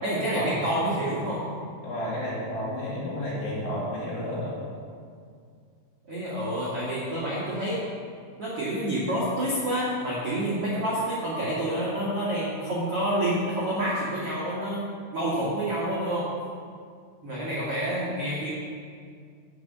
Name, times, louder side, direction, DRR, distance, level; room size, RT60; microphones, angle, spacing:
voice 1, 0.0-1.4 6.1-7.8 8.4-14.8 15.1-16.3 17.2-18.5, right 1 dB, 65° right, -8 dB, 1.4 m, -28 dB
voice 2, 1.8-4.5, left 1 dB, 55° left, -6 dB, 3.5 m, -31 dB
9.6 x 6.0 x 7.3 m, 2.1 s
omnidirectional pair, 5.7 m